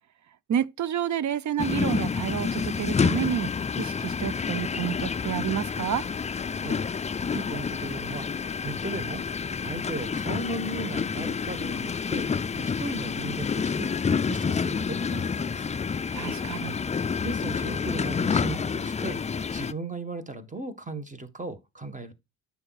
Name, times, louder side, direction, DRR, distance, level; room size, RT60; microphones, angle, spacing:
voice 1, 0.5-3.5 3.8-6.0 16.1-16.8, right 10 dB, 45° right, 0.7 m, -29 dB
bin collection, 1.6-19.7, left 5 dB, 20° left, 0.4 m, -29 dB
voice 2, 7.3-9.2 9.6-13.9 14.3-15.7 16.8-22.1, right 2 dB, 20° right, 1.6 m, -37 dB
9.6 x 7.4 x 2.4 m
supercardioid pair, 70°, 39 cm